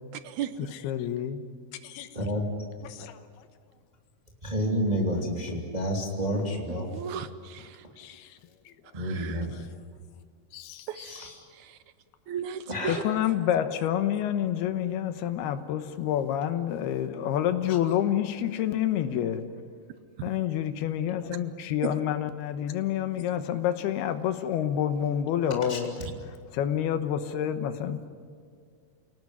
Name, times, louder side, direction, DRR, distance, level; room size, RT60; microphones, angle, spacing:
voice 1, 0.6-1.5 1.8-2.1 2.8-3.2 8.0-8.4 8.7-8.8 10.5-10.9 12.9-19.4 20.2-26.0 26.3-28.1, left 10 dB, 90° left, 9 dB, 3.1 m, -28 dB
voice 2, 2.1-2.4 4.4-7.0 8.9-9.5 10.9-11.3 12.7-13.0 25.7-25.8, equal, 15° right, -1 dB, 2.3 m, -29 dB
voice 3, 6.7-7.9 8.9-9.4 10.9-11.3 11.5-11.8 12.3-13.0 21.8-21.9, right 9 dB, 75° right, 12 dB, 1.8 m, -36 dB
29.0 x 18.0 x 9.7 m, 2.1 s
omnidirectional pair, 4.4 m